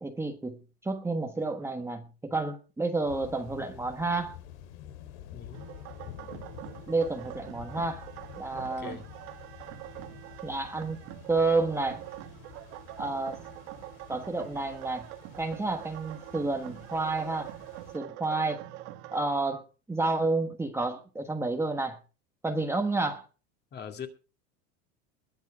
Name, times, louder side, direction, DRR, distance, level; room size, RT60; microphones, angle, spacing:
voice 1, 0.0-4.4 6.9-8.1 8.4-9.0 10.4-11.0 11.3-12.0 13.0-13.4 14.1-15.1 15.4-17.5 17.9-18.6 19.1-19.6 19.9-22.0 22.4-23.3, right 3 dB, 5° right, 5 dB, 1.2 m, -30 dB
sound 1, 3.0-18.0, left 10 dB, 75° left, 2.7 m, -49 dB
voice 2, 5.3-5.6 8.5-9.1 23.7-24.1, left 7 dB, 30° left, 6 dB, 2.4 m, -41 dB
sound 2, 5.5-19.2, right 15 dB, 65° right, 1.7 m, -44 dB
21.0 x 7.4 x 4.8 m, 0.34 s
supercardioid pair, 135°, 34 cm